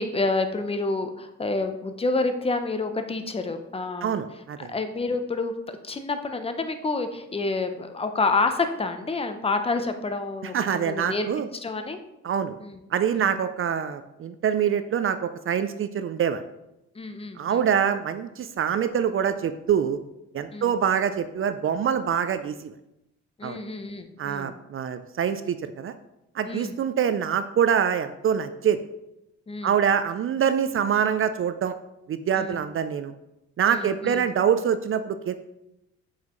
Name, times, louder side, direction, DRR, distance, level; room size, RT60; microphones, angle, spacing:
voice 1, 0.0-4.2 4.7-12.0 12.6-12.8 13.1-13.3 17.0-17.6 20.5-20.7 23.4-24.6 26.5-26.7 29.5-29.8 32.4-32.6 33.7-34.3, left 3 dB, 20° left, 8 dB, 0.7 m, -28 dB
voice 2, 4.0-4.7 10.5-11.5 12.2-12.6 12.9-16.4 17.4-20.0 20.3-22.7 23.4-23.6 24.2-25.9 26.3-28.8 29.6-31.7 32.1-33.1 33.6-35.3, right 8 dB, 45° right, 11 dB, 0.4 m, -25 dB
7.2 x 5.6 x 3.1 m, 0.89 s
cardioid pair, 90°, 30 cm